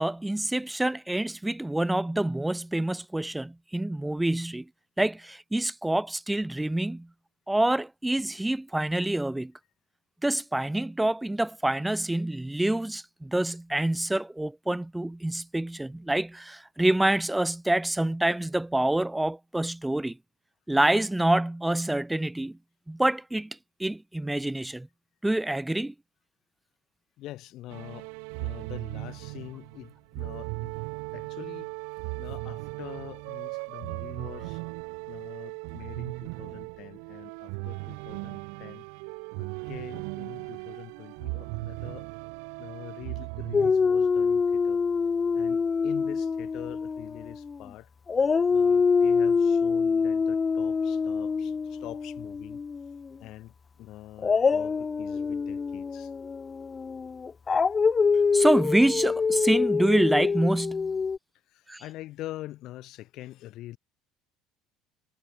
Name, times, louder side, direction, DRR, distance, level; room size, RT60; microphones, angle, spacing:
voice 1, 0.0-4.7 5.0-7.1 7.5-9.5 10.2-20.2 20.7-22.6 22.9-24.9 25.2-25.9 58.3-60.9 61.7-61.8, right 1 dB, 5° right, 0.8 m, -27 dB
voice 2, 27.2-28.1 28.4-30.8 31.1-31.7 32.2-34.6 35.1-38.8 39.4-42.1 42.6-44.8 45.3-47.9 48.5-52.6 53.2-56.1 61.5-63.8, left 15 dB, 55° left, 6.8 m, -44 dB
sound 1, 27.7-43.7, right 40 dB or more, 85° right, 1.1 m, -37 dB
Dog, 43.5-47.7 48.1-53.1 54.2-61.2, left 5 dB, 20° left, 0.5 m, -25 dB
cardioid pair, 150°, 0 cm